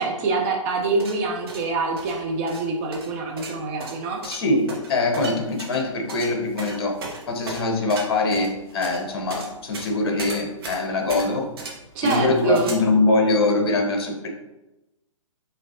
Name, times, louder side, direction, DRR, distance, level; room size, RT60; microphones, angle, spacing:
voice 1, 0.0-4.2 11.9-12.7, right 3 dB, 20° right, 0 dB, 0.5 m, -25 dB
sound 1, 0.8-12.7, right 3 dB, 45° right, 1.2 m, -37 dB
voice 2, 4.2-7.0 7.3-11.5 12.0-14.3, left 2 dB, 45° left, 2 dB, 1.0 m, -23 dB
5.6 x 3.2 x 2.9 m, 0.98 s
figure-of-eight pair, 125°, 17 cm